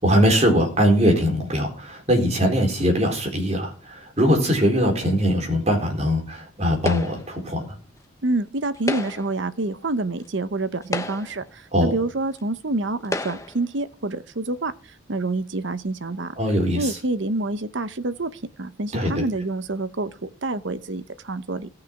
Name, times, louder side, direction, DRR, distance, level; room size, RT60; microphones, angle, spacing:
voice 1, 0.0-7.7 11.7-11.9 16.4-16.9 18.9-19.2, equal, 30° right, 1 dB, 4.0 m, -21 dB
sound 1, 6.8-7.4 8.7-9.4 10.2-10.3 10.8-11.5 12.4-12.5 13.0-13.6, left 2 dB, 15° left, 1.0 m, -30 dB
voice 2, 8.2-14.7 15.1-16.3 16.8-21.7, right 2 dB, 60° right, 12 dB, 0.9 m, -27 dB
17.0 x 6.5 x 6.0 m, 0.39 s
head